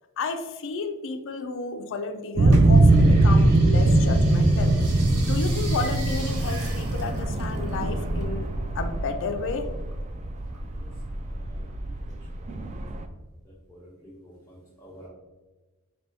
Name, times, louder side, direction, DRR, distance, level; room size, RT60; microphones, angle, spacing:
voice 1, 0.2-4.8 5.2-9.7, left 4 dB, 60° left, 6 dB, 0.4 m, -32 dB
sound 1, 2.4-13.0, right 2 dB, 30° right, 0.3 m, -21 dB
sound 2, 2.5-8.4 8.6-9.9 10.4-11.2 11.7-11.8, right 3 dB, 85° right, 0.9 m, -42 dB
voice 2, 12.4-12.8 13.7-15.1, equal, 10° left, -7 dB, 0.7 m, -49 dB
4.3 x 3.3 x 2.7 m, 1.2 s
head